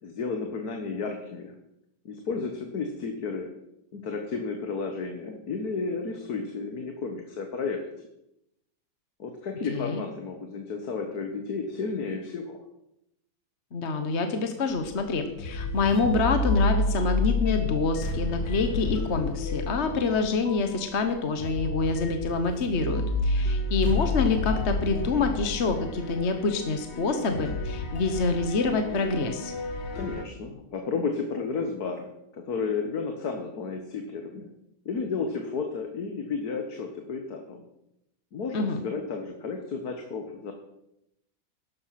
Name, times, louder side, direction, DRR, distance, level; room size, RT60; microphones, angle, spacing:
voice 1, 0.0-1.6 2.1-3.5 3.9-7.8 9.2-12.6 29.9-32.1 32.3-34.5 34.9-37.6 38.3-40.5, left 4 dB, 60° left, 4 dB, 1.9 m, -32 dB
voice 2, 9.7-10.0 13.7-29.5 38.5-38.8, left 4 dB, 40° left, 6 dB, 1.3 m, -26 dB
sound 1, 14.7-30.2, left 2 dB, 75° left, 2.5 m, -30 dB
13.5 x 11.0 x 5.9 m, 0.82 s
omnidirectional pair, 1.9 m